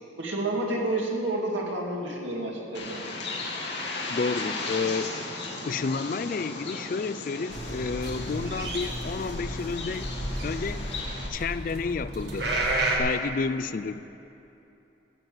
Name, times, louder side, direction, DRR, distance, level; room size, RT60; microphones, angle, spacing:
voice 1, 0.2-3.0, right 2 dB, 90° right, -2 dB, 2.4 m, -29 dB
Bird, 2.7-11.3, left 3 dB, 65° left, 1.7 m, -36 dB
voice 2, 4.1-5.3 5.7-10.1 10.4-10.9 11.3-12.7 13.0-14.0, left 4 dB, 45° left, 13 dB, 0.3 m, -30 dB
sound 1, 7.5-13.0, right 1 dB, 65° right, 1.7 m, -32 dB
14.0 x 7.3 x 7.7 m, 2.9 s
head